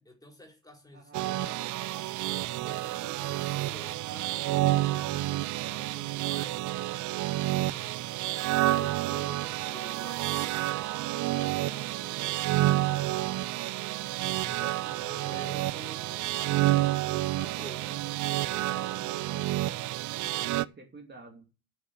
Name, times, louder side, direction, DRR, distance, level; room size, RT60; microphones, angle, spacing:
voice 1, 0.0-1.6 2.6-6.7 7.3-7.9 8.7-13.5 14.4-16.3 17.0-19.4 20.2-20.4, left 1 dB, 10° left, 4.7 m, -50 dB
voice 2, 0.9-1.7 7.6-7.9 20.4-21.5, right 2 dB, 20° right, 2.7 m, -51 dB
sound 1, 1.1-20.6, right 16 dB, 40° right, 0.6 m, -29 dB
8.3 x 7.9 x 8.4 m
figure-of-eight pair, 65°, 49 cm